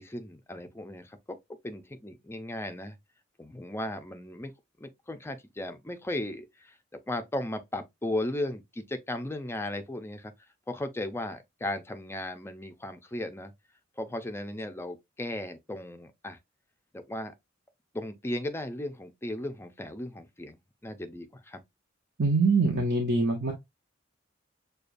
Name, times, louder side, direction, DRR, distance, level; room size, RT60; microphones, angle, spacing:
voice 1, 0.0-1.4 1.6-3.0 3.4-4.5 4.8-10.3 10.7-13.5 14.0-16.4 16.9-17.3 17.9-21.6, left 1 dB, 10° left, 0.5 m, -36 dB
voice 2, 22.2-23.5, right 3 dB, 55° right, 0.8 m, -24 dB
6.6 x 2.3 x 2.5 m
head